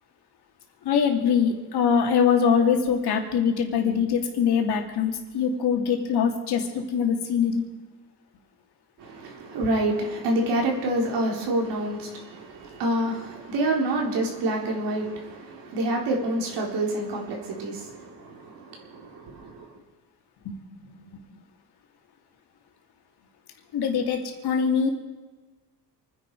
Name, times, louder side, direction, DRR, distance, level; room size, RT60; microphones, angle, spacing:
voice 1, 0.8-7.6 20.4-20.6 23.7-24.9, left 7 dB, 70° left, 2 dB, 2.9 m, -23 dB
voice 2, 9.0-19.7, right 1 dB, 90° right, 0 dB, 4.2 m, -27 dB
27.5 x 10.5 x 4.8 m, 1.3 s
cardioid pair, 120°, 40 cm